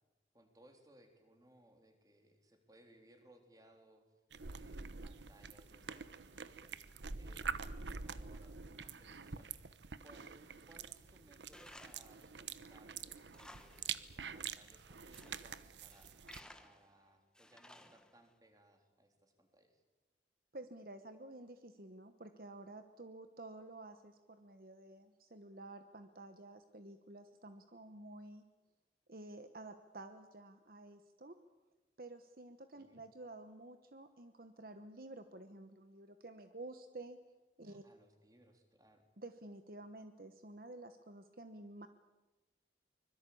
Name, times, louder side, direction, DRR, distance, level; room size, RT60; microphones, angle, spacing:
voice 1, 0.3-4.0 4.4-19.8 32.8-33.0 37.7-39.1, right 1 dB, 20° right, 4 dB, 3.6 m, -65 dB
sound 1, 4.3-16.4, right 6 dB, 85° right, 1.0 m, -46 dB
Tools, 11.5-12.1 12.5-12.6 13.1-13.9 14.2-14.3 14.9-15.4 15.9-16.9 17.3-18.3, left 1 dB, 5° left, 1.2 m, -57 dB
voice 2, 20.5-28.4 29.1-31.4 32.0-37.2 37.6-37.8 39.2-41.9, right 2 dB, 55° right, 9 dB, 1.1 m, -51 dB
24.5 x 22.0 x 8.6 m, 1.1 s
head